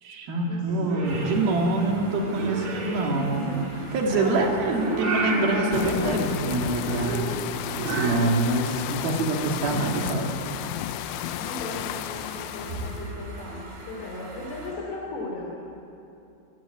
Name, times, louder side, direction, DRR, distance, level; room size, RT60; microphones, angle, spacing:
voice 1, 0.0-3.5 3.9-7.3 7.8-10.3, right 2 dB, 55° right, 0 dB, 3.8 m, -25 dB
Purr / Meow, 0.7-8.1, right 3 dB, 40° right, 4.2 m, -32 dB
voice 2, 0.9-2.0 3.1-4.5 4.8-5.8 11.3-15.5, left 2 dB, 55° left, -2 dB, 4.9 m, -37 dB
sound 1, 1.0-14.7, right 2 dB, 75° right, 5.5 m, -43 dB
sound 2, 5.7-13.1, left 14 dB, 85° left, 3.2 m, -32 dB
26.5 x 13.5 x 9.1 m, 2.8 s
omnidirectional pair, 5.7 m